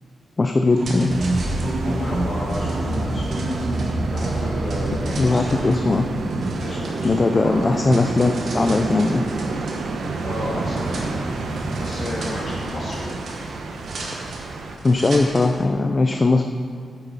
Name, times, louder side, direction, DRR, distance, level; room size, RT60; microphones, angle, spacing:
voice 1, 0.4-1.1 5.2-6.1 7.0-9.2 14.8-16.4, left 3 dB, 25° left, 5 dB, 0.3 m, -19 dB
sound 1, 0.6-15.7, right 2 dB, 65° right, 1.7 m, -38 dB
sound 2, 0.7-7.3, right 1 dB, 40° right, 1.0 m, -27 dB
sound 3, 1.1-14.8, right 3 dB, 90° right, 0.9 m, -29 dB
voice 2, 1.8-3.3 4.1-5.7 6.6-7.6 10.2-11.3 11.8-13.1, left 1 dB, 45° left, -6 dB, 2.8 m, -32 dB
9.3 x 9.0 x 4.1 m, 2.1 s
wide cardioid pair, 165°, 0 cm